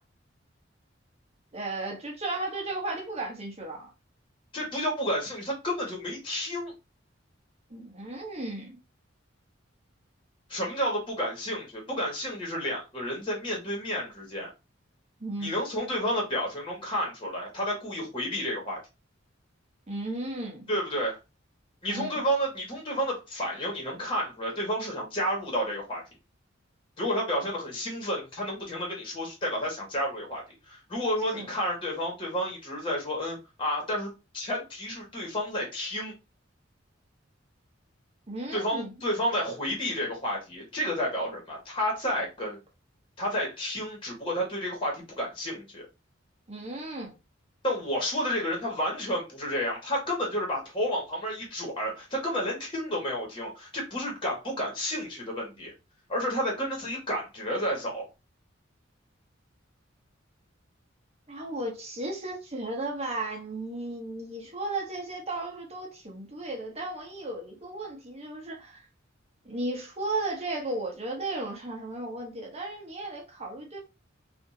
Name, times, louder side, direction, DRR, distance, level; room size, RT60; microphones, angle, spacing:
voice 1, 1.5-3.9 7.7-8.8 15.2-15.5 19.9-20.7 21.9-22.2 31.3-31.5 38.3-38.9 46.5-47.1 61.3-68.9 69.4-73.8, right 2 dB, 35° right, 1.0 m, -35 dB
voice 2, 4.5-6.7 10.5-14.5 15.4-18.8 20.7-21.2 21.8-26.0 27.0-30.4 30.7-36.1 38.5-42.6 43.2-45.8 47.6-55.7 56.1-58.1, equal, 25° left, 1.4 m, -31 dB
3.5 x 2.6 x 2.7 m
head